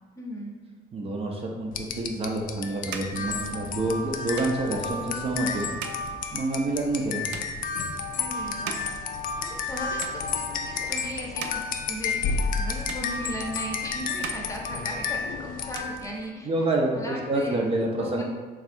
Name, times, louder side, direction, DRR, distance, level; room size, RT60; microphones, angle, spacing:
voice 1, 0.2-0.6 8.2-8.9 9.4-17.6 17.9-18.2, left 1 dB, 20° left, -1 dB, 0.7 m, -37 dB
voice 2, 0.9-5.7 6.3-7.2 16.5-18.2, right 2 dB, 35° right, 0 dB, 0.5 m, -28 dB
sound 1, 1.7-16.2, left 5 dB, 55° left, 0.4 m, -31 dB
sound 2, 2.0-9.7 10.0-10.7 11.1-12.6 12.9-13.8 14.1-15.3 15.5-16.7, right 6 dB, 85° right, 0.4 m, -42 dB
3.5 x 2.4 x 4.2 m, 1.4 s
cardioid pair, 110°, 17 cm